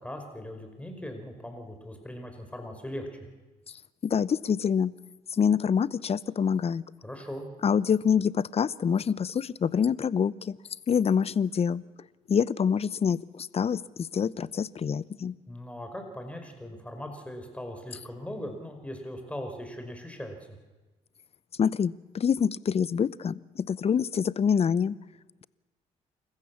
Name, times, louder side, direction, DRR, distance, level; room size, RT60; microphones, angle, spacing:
voice 1, 0.0-3.1 7.0-7.5 15.5-20.6, equal, 10° left, 5 dB, 5.5 m, -39 dB
voice 2, 4.0-4.9 5.3-6.8 7.6-10.6 10.9-11.8 12.3-15.4 21.6-24.9, left 7 dB, 40° left, 20 dB, 0.7 m, -26 dB
28.0 x 15.0 x 7.2 m, 1.2 s
supercardioid pair, 60°, 15 cm